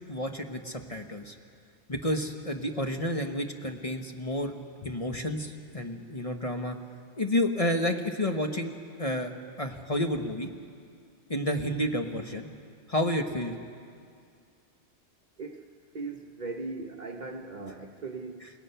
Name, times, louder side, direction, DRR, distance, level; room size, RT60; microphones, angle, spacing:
voice 1, 0.1-1.4 1.9-4.5 4.8-6.8 7.2-8.7 9.0-9.3 9.6-10.5 11.3-12.5 12.9-13.6, left 1 dB, 30° left, 4 dB, 1.1 m, -30 dB
voice 2, 15.9-18.5, right 3 dB, 40° right, 4 dB, 1.1 m, -39 dB
29.5 x 17.5 x 5.7 m, 2.3 s
omnidirectional pair, 1.2 m